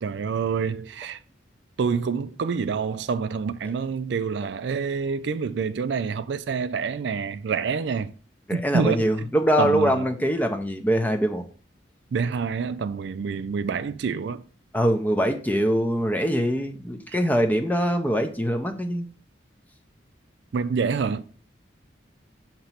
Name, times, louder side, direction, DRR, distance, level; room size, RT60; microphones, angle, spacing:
voice 1, 0.0-1.2 1.8-8.1 8.5-9.3 9.6-10.1 12.1-14.4 17.1-17.2 20.5-21.2, right 5 dB, 65° right, 0.4 m, -27 dB
voice 2, 8.5-11.5 14.7-19.1, equal, 10° left, 0.6 m, -23 dB
6.5 x 3.0 x 5.6 m
head